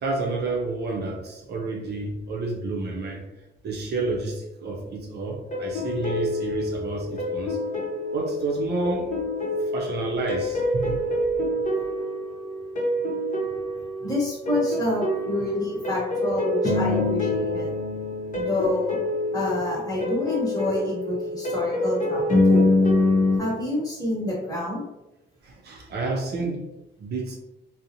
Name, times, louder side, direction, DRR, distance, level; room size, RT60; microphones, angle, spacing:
voice 1, 0.0-3.2 3.6-7.6 8.1-9.2 9.7-11.0 25.4-26.6 27.0-27.4, right 3 dB, 55° right, 0 dB, 0.6 m, -29 dB
sound 1, 5.5-23.4, left 2 dB, 40° left, 0.8 m, -26 dB
voice 2, 14.0-17.7 18.3-19.0 19.3-22.7 23.4-24.8, left 1 dB, 20° left, -4 dB, 1.2 m, -28 dB
2.5 x 2.0 x 2.8 m, 0.93 s
cardioid pair, 90°, 20 cm